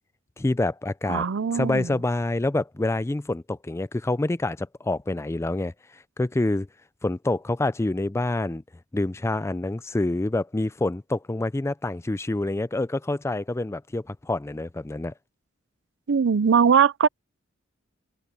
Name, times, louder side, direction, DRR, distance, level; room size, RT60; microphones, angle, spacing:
voice 1, 0.4-1.2 1.5-5.7 6.2-6.7 7.0-8.6 8.9-15.1, left 2 dB, 15° left, 0.4 m, -27 dB
voice 2, 1.1-1.9 16.1-17.1, right 6 dB, 65° right, 0.5 m, -20 dB
head